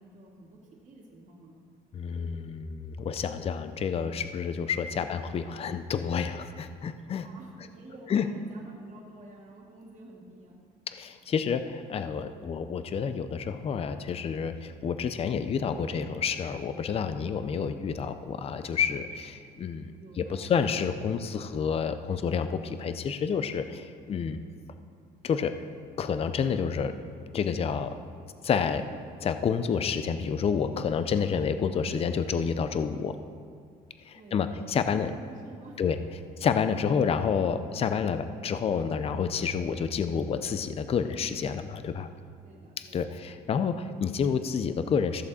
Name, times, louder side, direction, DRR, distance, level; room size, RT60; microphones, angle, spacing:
voice 1, 0.0-1.6 4.9-5.2 7.2-10.7 17.5-17.8 20.0-20.5 24.0-24.3 28.7-29.0 34.1-35.8 36.2-36.3 42.4-43.0, right 2 dB, 45° right, -3 dB, 2.1 m, -51 dB
voice 2, 1.9-7.3 8.1-8.3 10.9-24.4 25.2-25.5 26.0-27.0 27.3-28.0 28.4-28.8 29.2-33.2 34.0-35.1 35.8-36.0 36.4-42.1 42.9-45.2, left 6 dB, 35° left, 10 dB, 0.5 m, -29 dB
14.0 x 6.9 x 4.2 m, 2.2 s
cardioid pair, 110°, 17 cm